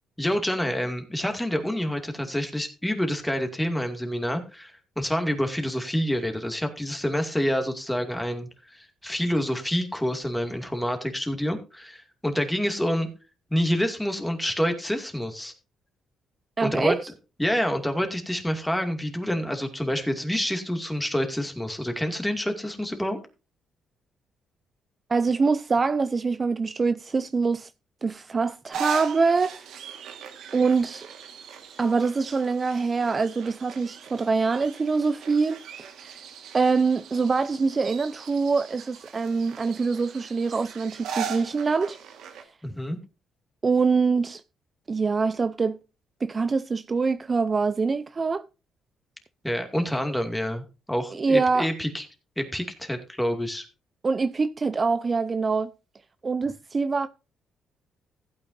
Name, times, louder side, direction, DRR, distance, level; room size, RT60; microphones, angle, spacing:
voice 1, 0.2-13.1 13.5-15.5 16.6-17.0 17.4-23.2 42.6-43.0 49.4-50.6 50.9-52.1 52.4-53.7, equal, 5° left, 2.4 m, -27 dB
voice 2, 16.6-17.0 25.1-27.7 28.0-29.7 30.5-31.1 31.8-35.6 36.0-36.2 36.5-42.0 43.6-44.4 44.9-45.8 46.2-48.4 51.1-51.7 54.0-55.7 56.2-57.1, right 4 dB, 35° right, 0.5 m, -24 dB
sound 1, 28.7-42.4, right 7 dB, 75° right, 1.7 m, -39 dB
15.5 x 8.7 x 2.7 m
cardioid pair, 90°, 0 cm